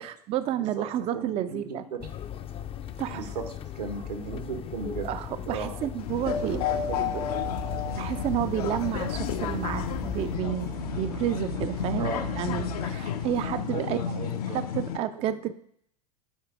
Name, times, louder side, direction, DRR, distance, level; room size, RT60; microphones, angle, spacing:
voice 1, 0.0-1.8 3.0-3.2 5.0-6.6 8.0-12.1 12.3-14.0 14.5-15.5, right 11 dB, 30° right, 11 dB, 0.4 m, -30 dB
voice 2, 1.1-2.0 3.1-3.4 3.7-5.1 5.5-5.7 6.1-7.6 12.0-12.2 13.7-14.6, right 5 dB, 90° right, 5 dB, 1.4 m, -36 dB
sound 1, 2.0-10.4, left 10 dB, 30° left, 0.5 m, -38 dB
sound 2, 6.0-15.0, left 8 dB, 70° left, 0.7 m, -32 dB
sound 3, 6.4-13.6, right 8 dB, 50° right, 0.8 m, -41 dB
8.0 x 4.9 x 4.8 m, 0.69 s
hypercardioid pair, 90°, 20 cm